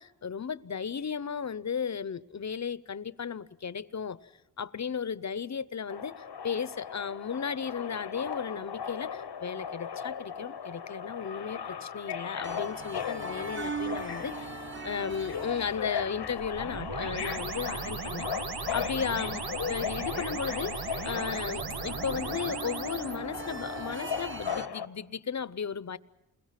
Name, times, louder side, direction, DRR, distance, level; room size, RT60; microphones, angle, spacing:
voice 1, 0.0-4.2 4.6-18.3 18.7-26.0, left 6 dB, 45° left, 0.8 m, -35 dB
Subway metro underground, 5.9-24.9, left 7 dB, 85° left, 1.1 m, -38 dB
sound 1, 12.4-24.7, right 4 dB, 30° right, 1.1 m, -42 dB
sound 2, 16.4-23.2, right 6 dB, 70° right, 0.9 m, -37 dB
29.0 x 22.0 x 5.9 m
wide cardioid pair, 65°, 39 cm